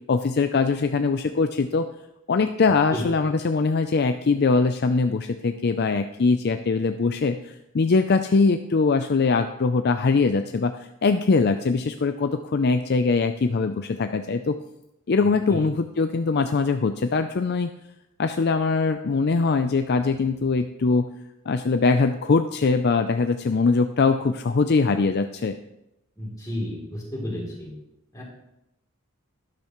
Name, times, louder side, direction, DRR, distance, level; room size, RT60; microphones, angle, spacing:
voice 1, 0.1-1.9 2.3-10.7 11.0-14.6 15.1-17.7 18.2-21.1 21.5-25.6, left 4 dB, 50° left, 8 dB, 0.4 m, -22 dB
voice 2, 26.2-27.7 28.1-28.2, left 1 dB, 15° left, -3 dB, 3.2 m, -32 dB
12.0 x 12.0 x 3.1 m, 0.88 s
head